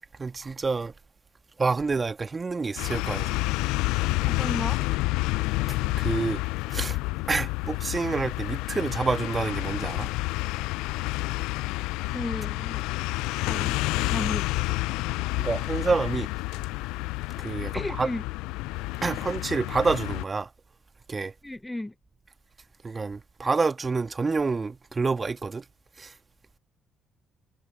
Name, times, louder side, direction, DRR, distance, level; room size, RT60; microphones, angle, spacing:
voice 1, 0.2-0.9 1.6-3.3 6.0-6.4 6.7-7.0 7.3-10.1 15.3-16.3 17.4-18.1 19.0-20.5 21.1-21.3 22.8-25.6 26.0-26.1, right 4 dB, 35° right, 1.6 m, -28 dB
sound 1, 2.8-20.2, left 22 dB, 80° left, 0.4 m, -29 dB
voice 2, 4.3-4.8 12.1-12.9 13.5-14.8 17.7-18.2 21.4-21.9, left 1 dB, 10° left, 0.8 m, -34 dB
hypercardioid pair, 50°, 0 cm